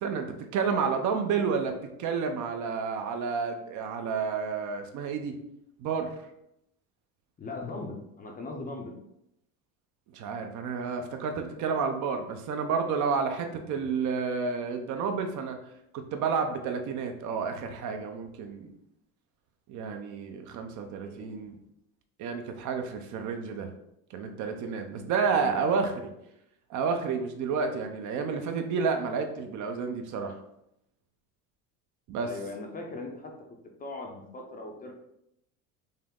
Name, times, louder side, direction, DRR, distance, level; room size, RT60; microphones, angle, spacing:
voice 1, 0.0-5.4 5.8-6.1 10.1-15.6 15.9-18.7 19.7-21.6 22.2-23.7 24.1-26.1 26.7-30.4 32.1-32.3, right 5 dB, 50° right, 6 dB, 0.6 m, -30 dB
voice 2, 7.4-8.9 20.9-21.3 25.2-25.6 32.2-33.3 33.8-34.9, left 3 dB, 20° left, 1 dB, 0.5 m, -39 dB
5.5 x 2.0 x 3.6 m, 0.80 s
cardioid pair, 145°, 39 cm